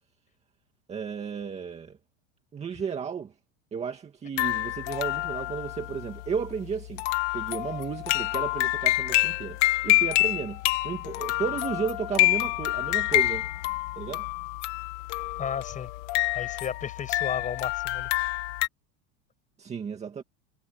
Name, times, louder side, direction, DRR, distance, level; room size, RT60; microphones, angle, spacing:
voice 1, 0.9-2.0 2.5-3.3 3.7-7.0 7.3-13.5 14.0-14.3 19.6-20.2, right 6 dB, 15° right, 2.2 m, -33 dB
sound 1, 4.4-18.7, left 19 dB, 55° left, 2.0 m, -27 dB
voice 2, 15.4-15.9 16.3-18.1, left 8 dB, 20° left, 6.5 m, -33 dB
supercardioid pair, 175°, 42 cm